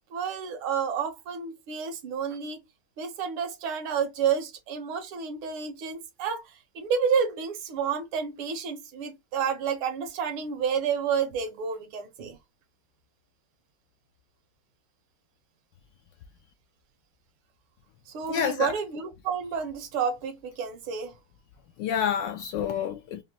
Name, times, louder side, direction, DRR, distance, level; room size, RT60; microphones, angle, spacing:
voice 1, 0.1-2.6 3.0-12.4 18.1-21.1, right 6 dB, 75° right, 1.8 m, -30 dB
voice 2, 18.3-18.7 21.8-23.2, left 8 dB, 75° left, 1.0 m, -28 dB
5.1 x 2.1 x 2.8 m
omnidirectional pair, 2.3 m